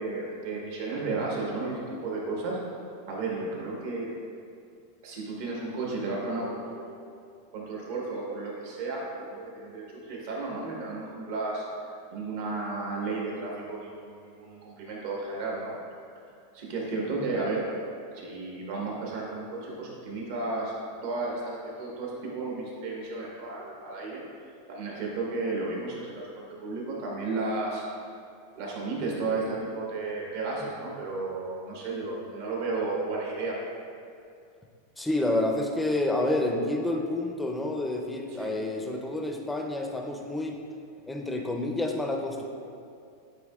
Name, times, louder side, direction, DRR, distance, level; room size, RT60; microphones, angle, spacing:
voice 1, 0.0-2.6 3.1-4.1 5.0-7.0 7.5-11.6 12.1-15.8 16.5-17.6 18.1-20.7 21.0-24.2 24.7-27.8 28.5-33.6 38.4-38.5, right 3 dB, 65° right, -3 dB, 1.2 m, -33 dB
voice 2, 35.0-40.6 41.1-42.5, left 1 dB, 5° left, 2 dB, 0.4 m, -29 dB
8.1 x 2.8 x 2.3 m, 2.4 s
supercardioid pair, 135°, 0 cm